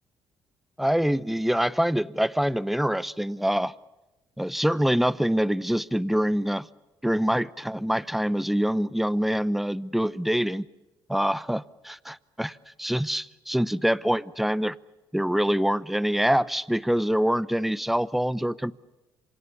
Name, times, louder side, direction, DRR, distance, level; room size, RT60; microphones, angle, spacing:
voice 1, 0.8-3.7 4.4-6.7 7.0-10.6 11.1-14.7 15.1-18.7, equal, ahead, 0.8 m, -25 dB
27.5 x 26.0 x 6.9 m
cardioid pair, 90°, 9 cm